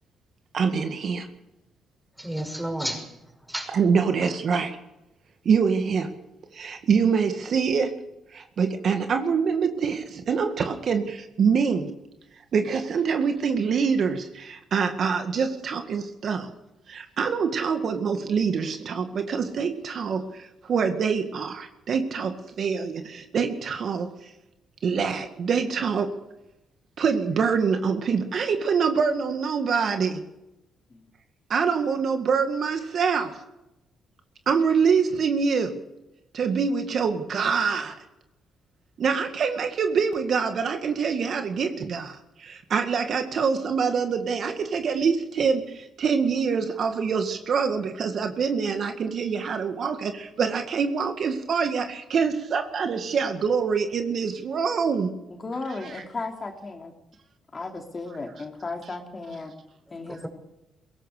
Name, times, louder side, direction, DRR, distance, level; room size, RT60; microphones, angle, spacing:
voice 1, 0.5-1.3 3.7-4.8 5.5-6.1 6.5-7.9 8.3-11.9 12.5-16.5 16.9-24.3 24.8-26.2 27.0-30.2 31.5-33.4 34.5-35.8 36.3-38.0 39.0-55.1 55.9-56.0, right 6 dB, 55° right, 7 dB, 2.0 m, -25 dB
voice 2, 2.2-3.7 4.2-4.6 60.2-60.3, right 1 dB, 5° right, 4 dB, 6.0 m, -33 dB
voice 3, 55.3-56.9 57.5-59.5 59.9-60.3, left 3 dB, 30° left, 3 dB, 3.0 m, -35 dB
22.0 x 17.5 x 6.7 m, 0.92 s
cardioid pair, 90°, 0 cm